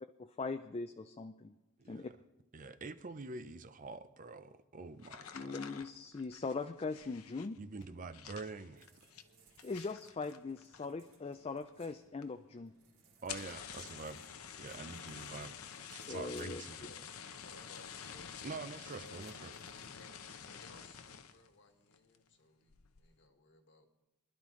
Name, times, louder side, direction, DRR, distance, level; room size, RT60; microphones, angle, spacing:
voice 1, 0.2-1.5 1.9-2.1 5.3-7.6 9.6-12.7 16.1-16.6, left 4 dB, 25° left, 7 dB, 0.4 m, -40 dB
voice 2, 1.8-2.2 2.5-5.6 7.6-8.9 13.2-14.3 14.6-15.6 15.9-16.9 18.4-19.5, right 3 dB, 35° right, 11 dB, 0.6 m, -46 dB
sound 1, 5.0-11.1 11.4-11.9 12.2-12.3 12.6-12.7 13.1-21.5 21.9-22.3 22.7-23.1, left 7 dB, 75° left, 0.8 m, -49 dB
sound 2, 8.7-21.2, right 3 dB, 70° right, 3.0 m, -67 dB
voice 3, 16.7-18.3 18.8-19.2 20.0-20.1 20.4-23.9, left 2 dB, 55° left, 5 dB, 1.6 m, -61 dB
24.0 x 11.5 x 3.2 m, 0.95 s
head